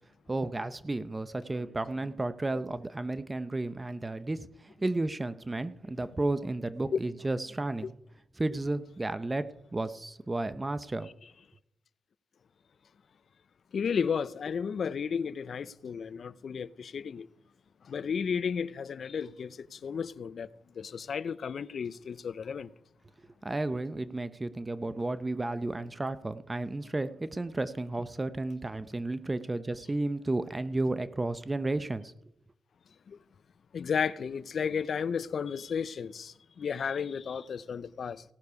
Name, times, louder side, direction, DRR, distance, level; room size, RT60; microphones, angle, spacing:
voice 1, 0.3-7.9 8.4-9.5 9.7-11.1 23.4-32.1, right 2 dB, 25° right, 0.7 m, -32 dB
voice 2, 13.7-17.3 17.8-20.5 20.7-22.7 33.1-33.2 33.7-38.2, left 6 dB, 65° left, 0.5 m, -33 dB
17.5 x 6.7 x 4.8 m
supercardioid pair, 55°, 0 cm